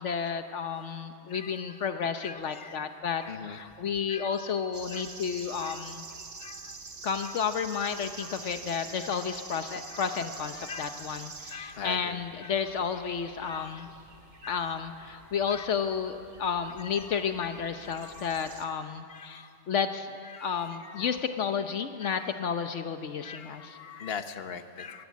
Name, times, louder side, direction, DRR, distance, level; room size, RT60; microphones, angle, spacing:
voice 1, 0.0-6.0 7.0-13.9 14.5-20.1 20.4-23.8, left 6 dB, 75° left, 8 dB, 1.2 m, -32 dB
voice 2, 1.3-1.6 2.2-2.7 3.2-3.6 4.1-4.5 4.9-5.1 5.6-5.8 6.4-6.8 7.2-7.3 8.2-8.4 9.1-9.4 9.9-10.0 10.6-11.0 11.5-12.5 13.4-13.9 14.4-14.6 15.5-15.7 17.9-18.3 19.1-19.5 20.3-21.1 22.0-22.3 23.2-25.1, left 6 dB, 55° left, 9 dB, 1.3 m, -43 dB
sound 1, 4.7-18.6, right 4 dB, 75° right, 2.0 m, -47 dB
23.5 x 22.0 x 8.4 m, 2.4 s
omnidirectional pair, 1.2 m